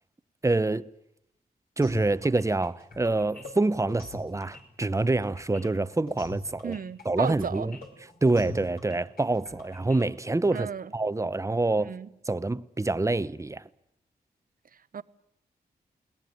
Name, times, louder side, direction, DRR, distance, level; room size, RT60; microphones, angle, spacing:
voice 1, 0.4-0.9 1.8-6.7 7.0-7.8 8.2-11.9 12.3-13.6, right 2 dB, 20° right, 0.8 m, -26 dB
sound 1, 1.8-10.5, left 2 dB, 65° left, 5.0 m, -42 dB
voice 2, 6.6-7.7 10.5-10.9 11.8-12.1 14.7-15.0, right 7 dB, 60° right, 0.8 m, -34 dB
21.5 x 17.5 x 9.4 m
cardioid pair, 50°, 17 cm